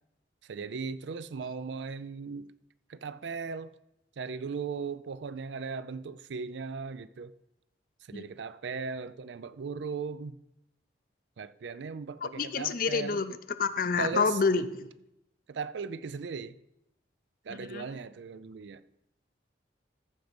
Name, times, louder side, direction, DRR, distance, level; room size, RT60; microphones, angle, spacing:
voice 1, 0.4-2.5 2.9-3.7 4.2-7.3 8.1-10.4 11.4-13.2 14.0-14.4 15.5-16.6 17.4-18.8, right 5 dB, 75° right, 0.4 m, -37 dB
voice 2, 12.2-14.9 17.5-17.8, left 5 dB, 50° left, 0.5 m, -29 dB
14.0 x 5.3 x 5.1 m
head